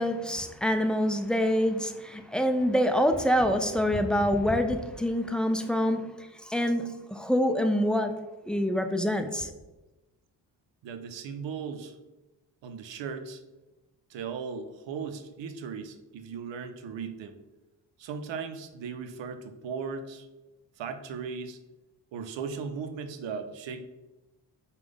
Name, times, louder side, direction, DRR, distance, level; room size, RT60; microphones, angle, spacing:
voice 1, 0.0-8.1 8.5-9.5, equal, ahead, 0.4 m, -26 dB
voice 2, 10.8-12.0 12.6-13.4 14.1-17.4 18.0-20.3 20.8-21.6 22.1-23.8, right 6 dB, 75° right, 0.6 m, -37 dB
4.9 x 2.4 x 3.6 m
supercardioid pair, 50°, 46 cm